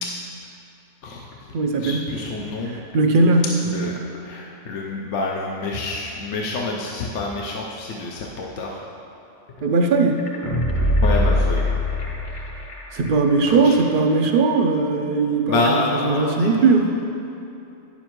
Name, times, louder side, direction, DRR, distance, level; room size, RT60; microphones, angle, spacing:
voice 1, 1.0-1.5 1.8-2.8 3.6-8.9 11.0-11.8 13.5-13.8 15.5-17.1, left 3 dB, 70° left, -2 dB, 1.0 m, -27 dB
voice 2, 1.5-2.0 2.9-3.5 9.6-10.2 12.9-15.6 16.0-16.9, right 3 dB, 60° right, 3 dB, 0.6 m, -18 dB
sound 1, 10.2-13.1 13.4-13.5, left 1 dB, 30° left, 0.8 m, -22 dB
9.5 x 7.1 x 3.0 m, 2.7 s
omnidirectional pair, 1.3 m